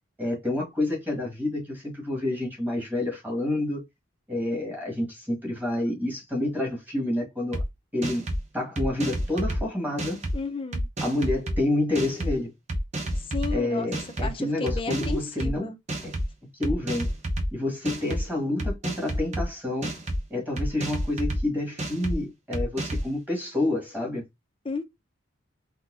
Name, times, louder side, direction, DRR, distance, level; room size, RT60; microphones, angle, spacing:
voice 1, 0.2-3.8 4.3-7.6 7.9-8.2 8.5-10.2 11.0-12.5 13.5-15.7 16.0-16.2 16.6-17.1 17.5-19.9 20.3-24.2, left 1 dB, 10° right, 1.2 m, -28 dB
sound 1, 7.5-7.6 8.0-8.4 8.8-9.6 10.0-10.3 10.7-11.6 11.9-12.3 12.7-13.5 13.9-14.3 14.7-15.5 15.9-16.3 16.6-17.5 17.8-18.2 18.6-19.4 19.8-20.2 20.6-21.4 21.8-22.1 22.5-23.1, equal, 35° right, 0.6 m, -29 dB
voice 2, 10.3-10.9 13.2-15.8 24.6-24.8, left 4 dB, 25° left, 0.5 m, -33 dB
3.9 x 2.1 x 2.4 m
head